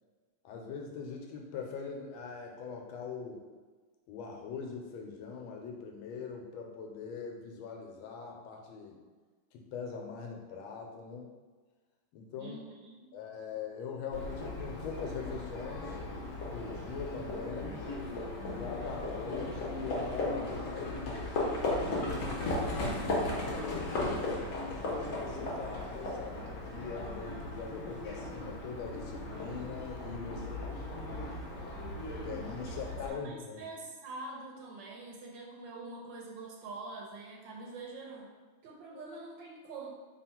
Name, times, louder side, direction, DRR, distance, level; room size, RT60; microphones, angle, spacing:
voice 1, 0.4-3.4 4.1-9.0 9.5-11.3 12.1-12.6 13.1-16.0 16.5-17.9 18.5-21.2 21.7-23.9 24.6-30.7 32.2-33.6, left 5 dB, 90° left, 1 dB, 1.4 m, -42 dB
voice 2, 12.4-13.2 30.3-30.6 32.6-32.7 33.1-38.3 38.6-39.9, right 3 dB, 75° right, 0 dB, 1.2 m, -45 dB
Livestock farm animals working animals, 14.1-33.1, left 2 dB, 55° left, 1.0 m, -36 dB
3.6 x 2.3 x 4.3 m, 1.4 s
omnidirectional pair, 2.2 m